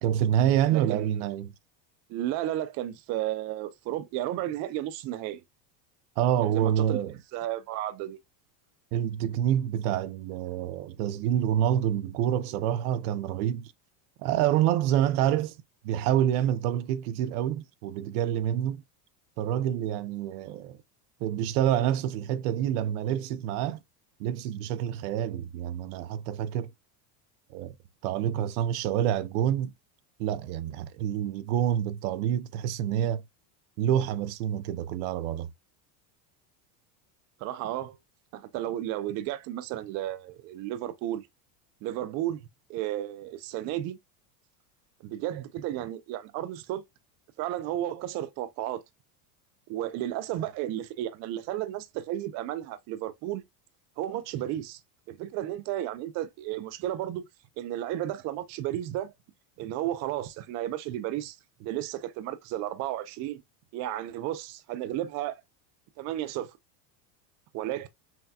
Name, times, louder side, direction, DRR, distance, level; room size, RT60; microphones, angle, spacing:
voice 1, 0.0-1.5 6.2-7.1 8.9-13.7 14.2-15.6 15.8-18.8 19.4-20.8 21.2-23.8 24.2-26.7 27.5-27.8 28.0-29.7 30.2-33.2 33.8-35.5, right 10 dB, 65° right, 0.7 m, -27 dB
voice 2, 0.7-1.2 2.1-5.4 6.5-7.0 7.3-8.2 37.4-38.0 38.3-41.3 41.8-42.4 42.7-44.0 45.0-46.8 47.4-48.8 49.7-53.4 54.0-54.8 55.1-57.2 57.6-59.1 59.6-63.4 63.7-65.4 66.0-66.6 67.5-67.9, right 13 dB, 35° right, 0.4 m, -33 dB
5.7 x 2.1 x 2.7 m
supercardioid pair, 140°, 48 cm